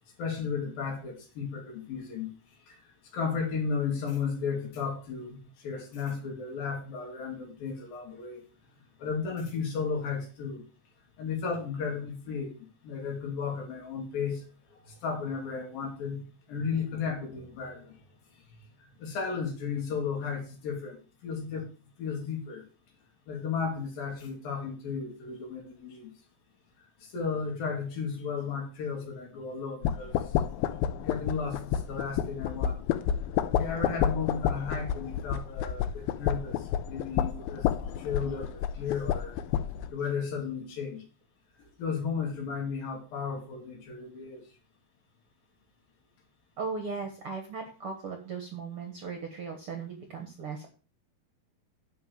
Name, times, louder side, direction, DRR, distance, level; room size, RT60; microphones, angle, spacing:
voice 1, 0.2-2.3 2.7-2.8 3.1-8.4 9.0-10.6 11.2-12.6 12.8-14.4 14.9-16.2 16.5-18.0 19.0-21.7 22.0-22.6 23.3-26.1 27.1-30.1 31.0-32.8 33.5-36.6 36.9-37.7 38.0-39.3 39.9-41.0 41.8-44.4, left 5 dB, 70° left, 1 dB, 4.3 m, -34 dB
Wobbling a thin plate., 29.8-39.9, left 9 dB, 85° left, 2.5 m, -30 dB
voice 2, 46.6-50.7, right 5 dB, 55° right, 4 dB, 1.7 m, -37 dB
10.5 x 4.8 x 7.0 m, 0.36 s
omnidirectional pair, 4.3 m